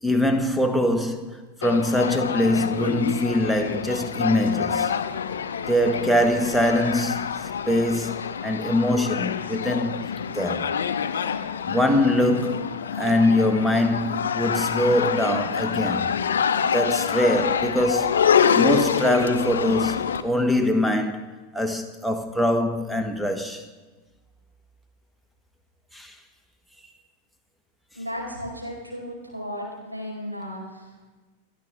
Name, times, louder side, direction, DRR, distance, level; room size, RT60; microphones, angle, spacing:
voice 1, 0.0-4.9 5.7-10.0 10.3-10.7 11.7-12.7 13.0-16.1 16.7-21.2 21.5-23.6 25.9-26.1, left 1 dB, ahead, 1.5 m, -23 dB
sound 1, 1.6-20.2, left 7 dB, 65° left, 0.8 m, -26 dB
voice 2, 27.9-31.1, equal, 85° right, 4.9 m, -35 dB
29.5 x 11.0 x 3.7 m
figure-of-eight pair, 90°, 0 cm